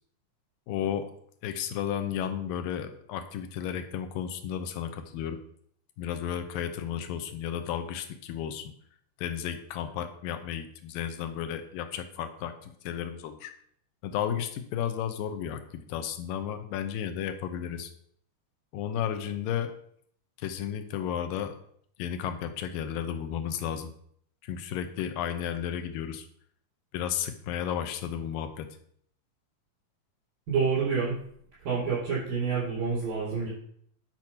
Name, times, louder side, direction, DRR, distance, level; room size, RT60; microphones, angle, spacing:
voice 1, 0.7-1.1 1.4-5.4 6.0-8.7 9.2-13.5 14.0-17.9 18.7-19.7 20.4-21.6 22.0-23.9 24.4-26.3 26.9-28.7, left 9 dB, 85° left, 8 dB, 2.6 m, -33 dB
voice 2, 30.5-31.2 31.6-33.5, right 5 dB, 80° right, -10 dB, 5.7 m, -28 dB
10.5 x 4.5 x 5.8 m, 0.66 s
omnidirectional pair, 3.9 m